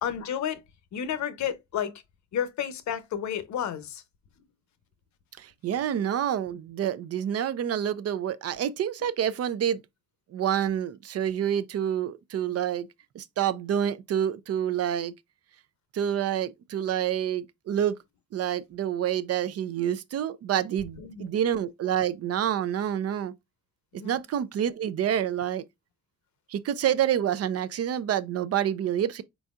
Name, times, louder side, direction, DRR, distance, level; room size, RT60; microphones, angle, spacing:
voice 1, 0.0-0.6 0.9-1.9 2.3-4.0 21.0-21.3 23.9-24.2, left 9 dB, 65° left, 0.8 m, -31 dB
voice 2, 5.4-9.8 10.3-12.9 13.1-15.1 15.9-18.0 18.3-23.3 23.9-25.6 26.5-29.2, right 10 dB, 55° right, 0.5 m, -28 dB
4.5 x 4.1 x 2.4 m
cardioid pair, 90°, 30 cm